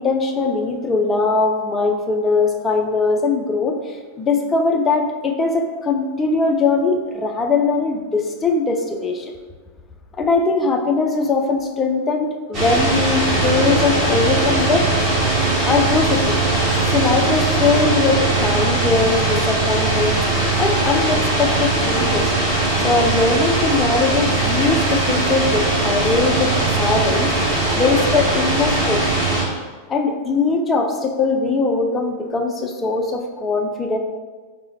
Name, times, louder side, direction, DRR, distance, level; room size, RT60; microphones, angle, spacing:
voice 1, 0.0-9.3 10.2-14.9 15.7-16.4 16.9-20.2 20.6-22.3 22.8-27.3 27.7-29.0 29.4-29.6 29.9-34.0, left 3 dB, 20° left, 3 dB, 0.4 m, -20 dB
sound 1, 12.5-29.4, right 2 dB, 35° right, 1.2 m, -20 dB
4.6 x 2.0 x 2.8 m, 1.4 s
figure-of-eight pair, 90°, 0 cm